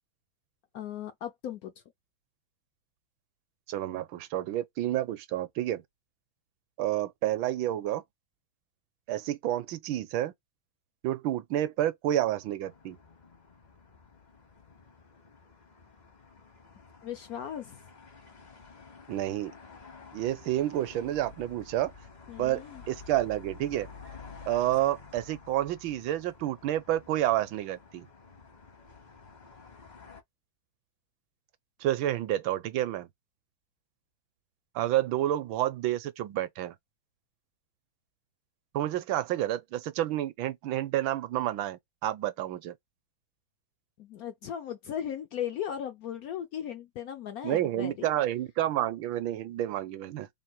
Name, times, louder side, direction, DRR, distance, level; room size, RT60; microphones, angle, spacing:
voice 1, 0.7-1.7 17.0-17.9 22.3-22.8 44.0-48.1, left 9 dB, 85° left, 0.8 m, -37 dB
voice 2, 3.7-5.8 6.8-8.0 9.1-10.3 11.0-13.0 19.1-19.5 20.1-21.9 22.4-23.9 24.5-28.1 31.8-33.1 34.7-36.7 38.7-42.7 47.4-50.3, right 13 dB, 80° right, 1.4 m, -29 dB
sound 1, 12.6-30.2, left 4 dB, 45° left, 0.5 m, -51 dB
3.6 x 2.4 x 4.4 m
omnidirectional pair, 2.2 m